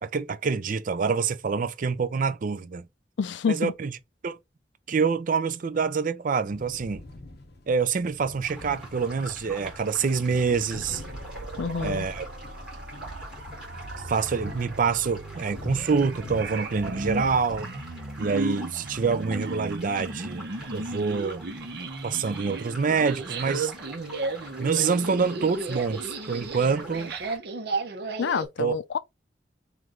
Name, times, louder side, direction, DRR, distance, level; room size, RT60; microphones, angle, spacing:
voice 1, 0.0-2.9 3.5-3.9 4.2-4.4 4.9-7.0 7.7-11.0 11.8-12.3 14.1-17.7 18.2-21.4 22.0-23.7 24.6-27.1 28.6-28.8, right 5 dB, 50° right, 0.4 m, -26 dB
voice 2, 3.2-3.7 11.6-12.1 28.2-29.0, left 6 dB, 80° left, 0.4 m, -27 dB
sound 1, 6.5-17.6, left 2 dB, 65° left, 0.8 m, -44 dB
sound 2, 8.4-27.4, right 1 dB, 5° right, 2.1 m, -46 dB
sound 3, 10.7-28.5, right 3 dB, 65° right, 0.8 m, -35 dB
3.2 x 3.1 x 3.7 m
head